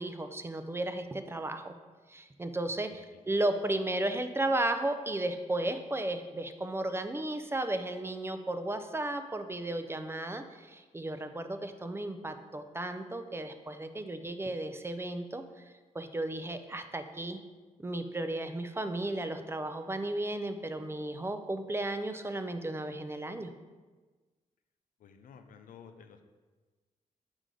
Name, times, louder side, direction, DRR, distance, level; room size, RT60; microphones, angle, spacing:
voice 1, 0.0-1.7 2.1-15.4 15.9-17.4 17.8-23.5, right 1 dB, 20° right, 8 dB, 0.5 m, -34 dB
voice 2, 25.0-26.3, left 6 dB, 85° left, 7 dB, 0.6 m, -52 dB
6.7 x 4.8 x 3.8 m, 1.3 s
cardioid pair, 95°, 14 cm